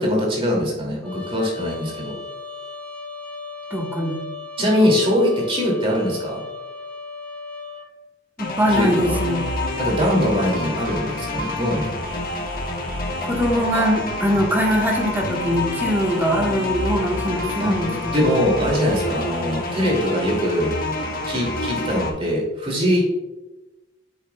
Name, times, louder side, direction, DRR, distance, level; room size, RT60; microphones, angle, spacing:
voice 1, 0.0-2.1 4.6-6.4 8.7-9.2 9.8-11.9 13.7-13.8 17.6-17.7 18.1-20.7 21.2-23.0, equal, 30° right, -2 dB, 2.5 m, -22 dB
Trumpet, 1.0-7.9, left 3 dB, 10° left, 1.5 m, -36 dB
voice 2, 3.7-4.2 8.4-9.4 13.2-18.3, equal, 10° right, -1 dB, 1.3 m, -22 dB
sound 1, 8.4-22.1, left 2 dB, 50° left, 1.2 m, -28 dB
8.1 x 7.5 x 2.3 m, 1.0 s
head